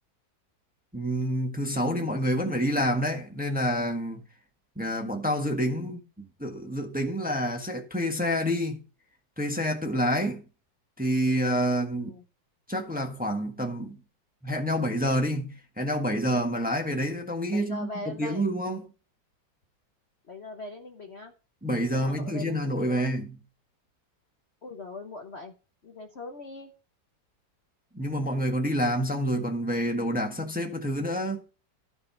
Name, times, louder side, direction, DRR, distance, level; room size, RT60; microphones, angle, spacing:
voice 1, 0.9-4.2 4.7-8.8 9.4-10.4 11.0-12.1 12.7-14.0 14.4-18.9 21.6-23.4 27.9-31.4, equal, 5° right, 1.2 m, -28 dB
voice 2, 11.7-12.2 17.5-18.4 20.3-21.3 21.9-23.1 24.6-25.5 25.8-26.7, left 2 dB, 45° left, 1.1 m, -41 dB
13.5 x 4.7 x 5.7 m
omnidirectional pair, 2.0 m